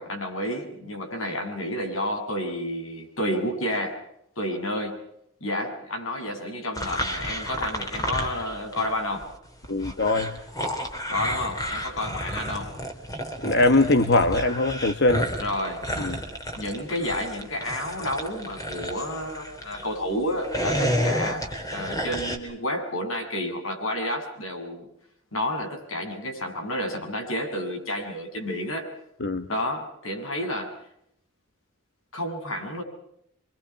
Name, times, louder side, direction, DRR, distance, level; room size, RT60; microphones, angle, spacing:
voice 1, 0.0-4.0 4.4-5.0 5.4-9.3 11.1-12.7 15.4-15.8 16.6-24.9 25.3-28.9 29.5-30.8 32.1-32.8, left 1 dB, 90° left, 4 dB, 7.9 m, -30 dB
sound 1, 6.8-9.0 9.2-19.9 20.3-22.4, equal, 20° left, 4.0 m, -31 dB
voice 2, 9.7-10.3 13.4-15.3 16.0-16.2 29.2-29.5, left 2 dB, 55° left, 7 dB, 1.5 m, -21 dB
28.0 x 24.5 x 5.9 m, 0.75 s
head